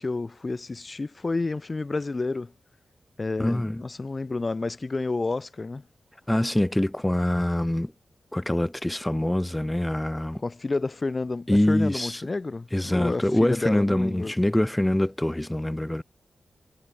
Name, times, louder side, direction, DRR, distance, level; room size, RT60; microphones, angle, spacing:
voice 1, 0.0-2.5 3.2-5.8 10.4-14.3, left 3 dB, 30° left, 3.0 m, -30 dB
voice 2, 3.4-3.8 6.3-7.9 8.3-10.4 11.5-12.3 12.7-16.0, left 1 dB, 10° left, 0.8 m, -24 dB
wide cardioid pair, 140°, 0 cm